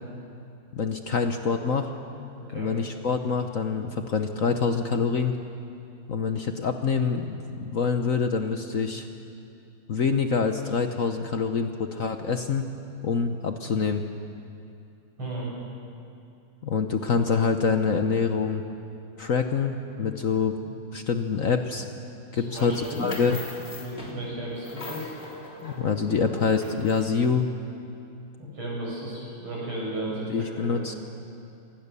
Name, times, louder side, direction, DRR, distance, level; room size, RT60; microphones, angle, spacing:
voice 1, 0.7-1.9 2.5-5.4 6.1-9.1 9.9-12.7 13.0-14.0 16.6-18.6 19.2-20.6 20.9-21.9 22.3-23.4 25.6-27.5 30.3-30.9, left 5 dB, 50° left, 6 dB, 1.1 m, -26 dB
voice 2, 2.3-2.7 15.2-15.5 22.3-23.1 23.8-25.1 28.4-31.0, right 1 dB, 90° right, -4 dB, 7.9 m, -34 dB
sound 1, 22.6-27.3, left 1 dB, 25° left, 3.6 m, -41 dB
27.0 x 19.5 x 6.9 m, 2.7 s
omnidirectional pair, 2.2 m